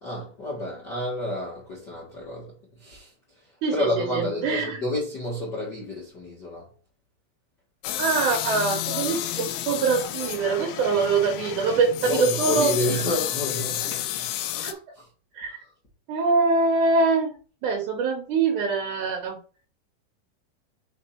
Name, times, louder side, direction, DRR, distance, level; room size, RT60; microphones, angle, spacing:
voice 1, 0.0-3.1 3.7-6.7 12.0-15.1, left 1 dB, 40° left, 1.9 m, -30 dB
voice 2, 3.6-4.8 8.0-12.7 14.6-14.8 15.3-15.6 16.1-17.4 17.6-19.4, right 4 dB, 70° right, 2.0 m, -24 dB
sound 1, 7.8-14.7, left 13 dB, 85° left, 2.5 m, -30 dB
5.3 x 4.2 x 4.3 m
omnidirectional pair, 4.3 m